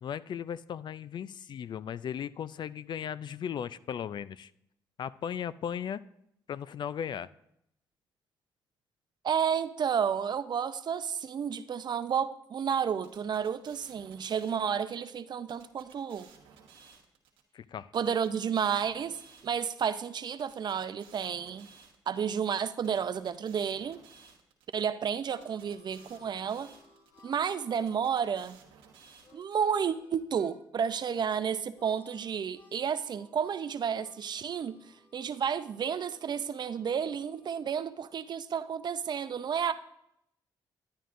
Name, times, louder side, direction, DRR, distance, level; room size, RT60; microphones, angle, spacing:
voice 1, 0.0-4.5 5.0-6.0 6.5-7.3 17.5-17.9, left 8 dB, 55° left, 0.4 m, -36 dB
voice 2, 9.2-16.3 17.9-19.2 19.4-21.7 22.1-24.0 24.7-26.7 27.2-28.6 29.3-34.8 35.1-39.7, right 7 dB, 55° right, 0.5 m, -31 dB
sound 1, 13.0-15.0 15.5-17.4 17.9-19.9 20.4-22.3 22.8-24.8 25.3-27.2 27.7-29.7, right 6 dB, 90° right, 1.2 m, -57 dB
Harmonica, 24.7-30.5 30.8-31.3 31.7-37.7, left 2 dB, 80° left, 1.7 m, -62 dB
11.0 x 9.3 x 2.6 m
supercardioid pair, 60°, 9 cm